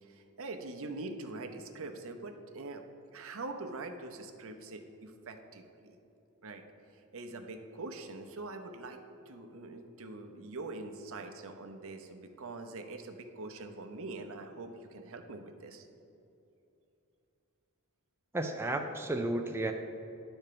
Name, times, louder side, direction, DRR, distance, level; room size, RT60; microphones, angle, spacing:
voice 1, 0.0-2.8 3.1-6.0 6.4-6.6 7.1-15.9, right 3 dB, 65° right, 6 dB, 0.8 m, -44 dB
voice 2, 18.3-19.7, right 1 dB, 10° right, 3 dB, 0.4 m, -32 dB
10.5 x 4.4 x 6.8 m, 2.8 s
head